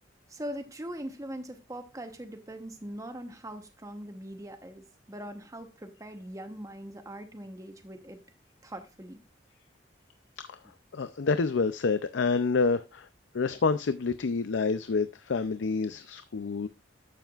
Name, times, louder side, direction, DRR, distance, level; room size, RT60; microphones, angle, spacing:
voice 1, 0.3-8.2 8.6-9.2, right 1 dB, 20° right, 1.0 m, -41 dB
voice 2, 10.9-13.1 13.3-16.7, left 4 dB, 85° left, 0.5 m, -28 dB
12.0 x 8.0 x 2.4 m
head